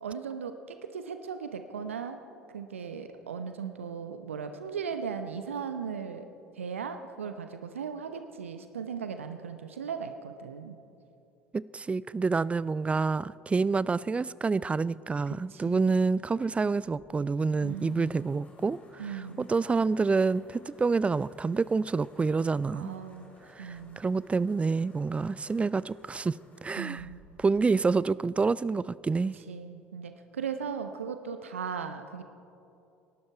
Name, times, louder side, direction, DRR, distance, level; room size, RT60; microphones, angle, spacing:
voice 1, 0.0-2.2 2.5-6.3 6.5-10.8 15.5-15.9 17.6-18.1 19.0-19.5 22.7-23.3 23.6-24.0 26.8-27.2 29.5-32.2, right 6 dB, 80° right, 0.7 m, -37 dB
voice 2, 11.5-22.9 23.6-27.1 27.4-29.3, right 4 dB, 15° right, 0.4 m, -28 dB
sound 1, 16.8-28.6, left 1 dB, 20° left, 4.1 m, -58 dB
26.5 x 12.0 x 4.6 m
figure-of-eight pair, 65°, 7 cm